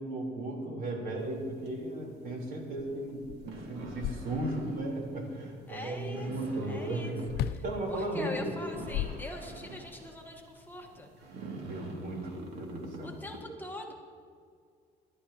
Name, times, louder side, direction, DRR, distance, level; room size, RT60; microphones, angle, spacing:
voice 1, 0.0-7.2 7.6-8.6 11.6-13.1, right 1 dB, 60° right, -1 dB, 3.8 m, -36 dB
sound 1, 1.2-13.4, right 2 dB, 80° right, 2.4 m, -48 dB
sound 2, 2.8-2.9 3.2-4.7 7.3-7.7 8.6-9.8, left 11 dB, 70° left, 0.5 m, -36 dB
voice 2, 5.7-7.2 7.4-7.6 7.9-11.1 13.0-13.9, left 1 dB, 10° left, 0 dB, 1.4 m, -42 dB
25.0 x 11.5 x 2.9 m, 2.2 s
cardioid pair, 110°, 17 cm